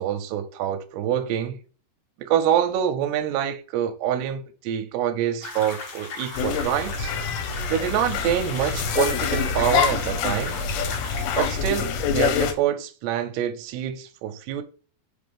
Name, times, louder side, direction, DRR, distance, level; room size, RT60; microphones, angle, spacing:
voice 1, 0.0-1.6 2.2-7.1 7.7-10.6 11.4-14.6, right 10 dB, 85° right, 2.6 m, -26 dB
sound 1, 5.4-11.5, left 3 dB, 70° left, 1.3 m, -37 dB
sound 2, 6.4-12.5, left 7 dB, 85° left, 2.9 m, -26 dB
5.5 x 5.1 x 3.4 m
omnidirectional pair, 5.0 m